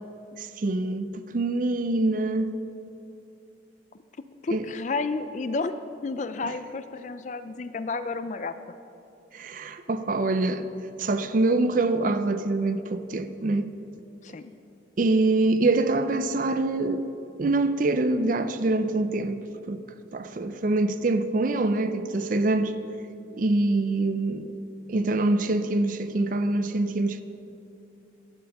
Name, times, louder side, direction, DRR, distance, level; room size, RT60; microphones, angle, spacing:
voice 1, 0.4-2.5 4.5-4.7 6.4-6.5 9.3-10.7 11.0-13.7 15.0-17.1 17.4-19.8 20.1-22.7 23.3-24.6 24.9-27.2, right 2 dB, 45° right, 0.4 m, -25 dB
voice 2, 4.4-5.8 6.0-8.5 14.2-14.5, left 3 dB, 40° left, 0.4 m, -31 dB
11.5 x 7.0 x 6.5 m
head